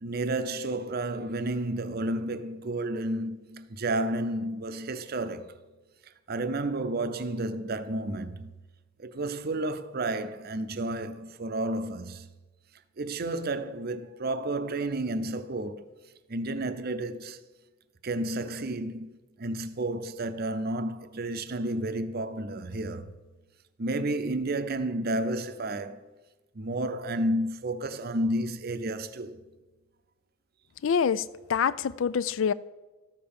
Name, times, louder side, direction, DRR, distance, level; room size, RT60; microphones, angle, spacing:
voice 1, 0.0-5.6 6.3-8.5 9.0-12.3 13.0-15.9 16.3-17.4 18.0-19.1 19.4-23.1 23.8-26.0 26.6-29.4, right 1 dB, 45° right, 0.6 m, -31 dB
voice 2, 30.8-32.5, left 7 dB, 60° left, 0.4 m, -26 dB
13.5 x 6.9 x 5.4 m
head